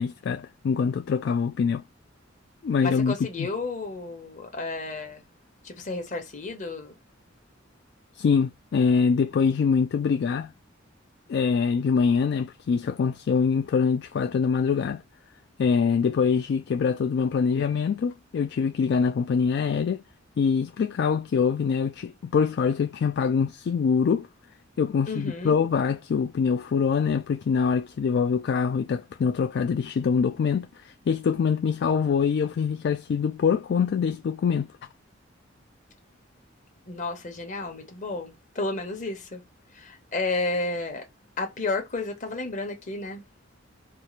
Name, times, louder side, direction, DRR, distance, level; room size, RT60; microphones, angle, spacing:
voice 1, 0.0-1.8 2.6-3.5 8.2-10.5 11.3-15.0 15.6-20.0 20.4-24.3 24.8-34.7, left 6 dB, 60° left, 0.3 m, -24 dB
voice 2, 2.8-5.2 5.6-7.0 25.1-25.6 36.9-39.4 39.7-41.0 41.4-43.2, left 3 dB, 40° left, 1.1 m, -32 dB
4.5 x 2.4 x 3.2 m
head